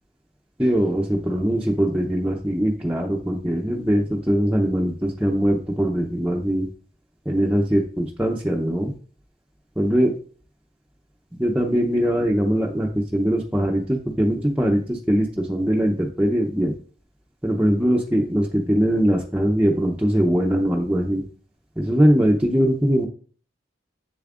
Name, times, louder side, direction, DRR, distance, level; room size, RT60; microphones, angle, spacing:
voice 1, 0.6-6.7 7.3-8.9 9.8-10.1 11.4-16.7 17.4-21.2 21.8-23.1, equal, 5° right, -2 dB, 0.6 m, -21 dB
7.6 x 7.0 x 2.5 m, 0.43 s
head